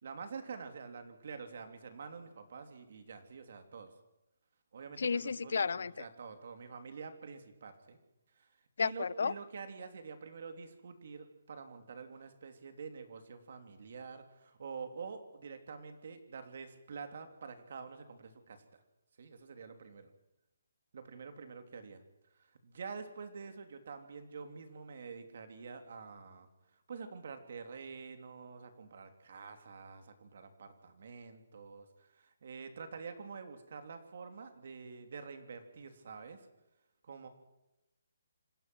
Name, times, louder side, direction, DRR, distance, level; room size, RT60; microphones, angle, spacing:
voice 1, 0.0-3.9 4.7-8.0 8.4-8.5 8.8-18.8 19.2-20.1 20.9-22.0 22.4-26.5 26.9-36.5 37.0-37.3, right 5 dB, 45° right, 7 dB, 3.1 m, -47 dB
voice 2, 5.0-5.9 8.8-9.3, left 5 dB, 55° left, 22 dB, 0.7 m, -32 dB
27.5 x 16.5 x 6.2 m, 0.91 s
hypercardioid pair, 175°, 0 cm